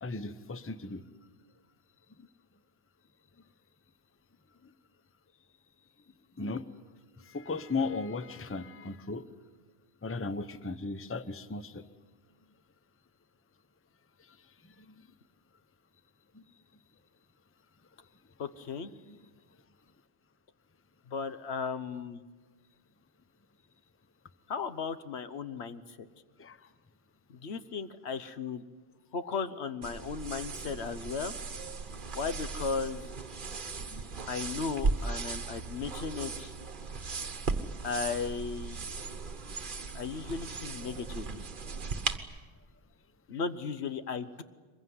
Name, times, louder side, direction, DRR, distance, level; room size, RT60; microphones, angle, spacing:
voice 1, 0.0-1.0 6.4-6.6 7.3-9.2 10.0-11.8 26.4-26.6 33.9-34.0, left 3 dB, 15° left, 12 dB, 0.7 m, -36 dB
voice 2, 18.4-18.9 21.1-22.2 24.5-25.8 27.3-28.6 29.1-31.3 32.1-33.0 34.3-36.5 37.8-38.8 39.9-41.5 43.3-44.4, left 5 dB, 75° left, 12 dB, 1.2 m, -36 dB
sound 1, 29.8-42.2, right 4 dB, 50° right, 1.2 m, -37 dB
23.5 x 21.5 x 9.6 m, 1.4 s
omnidirectional pair, 1.1 m